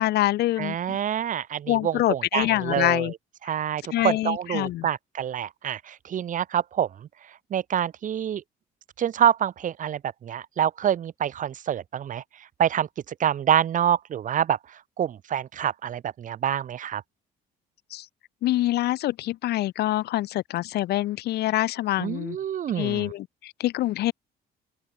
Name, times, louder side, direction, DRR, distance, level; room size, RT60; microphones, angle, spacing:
voice 1, 0.0-1.0 1.7-3.1 3.9-4.9 17.9-18.1 18.4-22.4 22.8-24.1, left 15 dB, 75° left, 2.0 m, -25 dB
voice 2, 0.6-3.2 3.4-8.4 9.0-17.0 22.0-23.1, right 9 dB, 50° right, 1.8 m, -27 dB
open air
cardioid pair, 110°, 17 cm